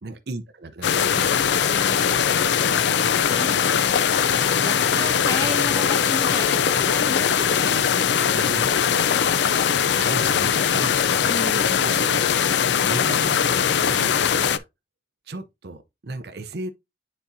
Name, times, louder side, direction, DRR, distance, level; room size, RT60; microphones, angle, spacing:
voice 1, 0.0-1.5 4.2-4.5 8.3-8.7 10.0-11.3 11.8-12.2 12.8-14.7 15.3-16.7, right 2 dB, 60° right, 0.6 m, -35 dB
sound 1, 0.8-14.6, left 7 dB, 70° left, 0.4 m, -21 dB
voice 2, 1.7-3.8 4.6-8.3 11.3-11.9, left 1 dB, 20° left, 2.6 m, -34 dB
9.6 x 4.1 x 2.6 m
head